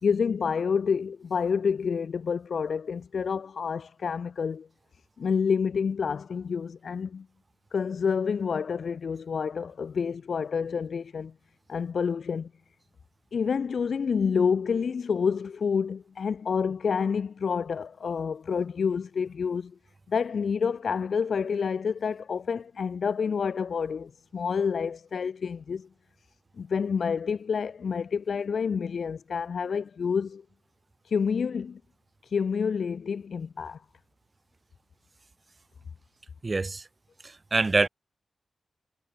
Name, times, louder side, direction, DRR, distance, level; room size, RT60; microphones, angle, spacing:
voice 1, 0.0-4.7 5.2-7.3 7.7-11.3 11.7-12.5 13.3-19.7 20.1-25.9 26.6-30.4 31.0-31.8 32.2-33.8, left 6 dB, 70° left, 3.1 m, -28 dB
voice 2, 36.4-36.8 37.2-37.9, right 3 dB, 35° right, 3.2 m, -25 dB
wide cardioid pair, 90°, 0 cm